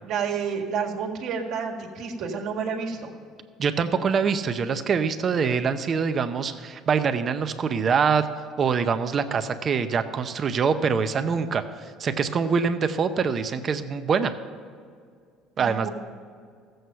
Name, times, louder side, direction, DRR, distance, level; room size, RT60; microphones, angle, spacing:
voice 1, 0.0-3.1 15.6-15.9, right 6 dB, 60° right, 0 dB, 1.7 m, -30 dB
voice 2, 3.6-8.3 8.6-14.3 15.6-15.9, right 6 dB, 35° right, 10 dB, 0.7 m, -24 dB
14.5 x 7.9 x 5.6 m, 2.1 s
cardioid pair, 125°, 0 cm